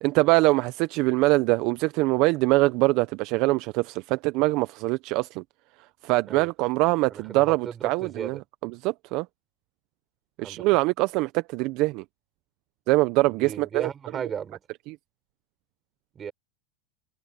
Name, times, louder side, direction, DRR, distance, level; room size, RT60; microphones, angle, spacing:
voice 1, 0.0-5.4 6.0-9.3 10.4-12.0 12.9-13.9 14.9-15.0, right 22 dB, 55° right, 0.8 m, -23 dB
voice 2, 7.1-8.4 10.4-10.8 13.4-14.6 16.1-16.3, right 7 dB, 25° right, 6.3 m, -35 dB
hypercardioid pair, 115°, 0 cm